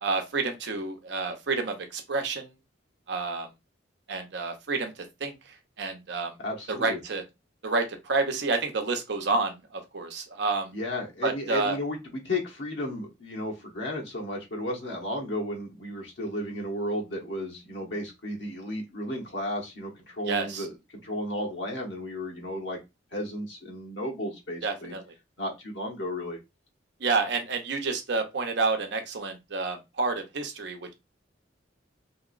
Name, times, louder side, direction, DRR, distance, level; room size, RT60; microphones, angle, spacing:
voice 1, 0.0-2.5 3.1-3.5 4.1-5.3 5.8-6.4 6.7-7.2 7.6-10.7 11.2-11.8 20.3-20.7 24.6-25.0 27.0-30.9, right 3 dB, 65° right, 0.7 m, -29 dB
voice 2, 6.4-7.0 10.7-22.8 23.1-24.9 25.4-26.4, left 1 dB, 70° left, 0.9 m, -33 dB
2.9 x 2.9 x 2.4 m
head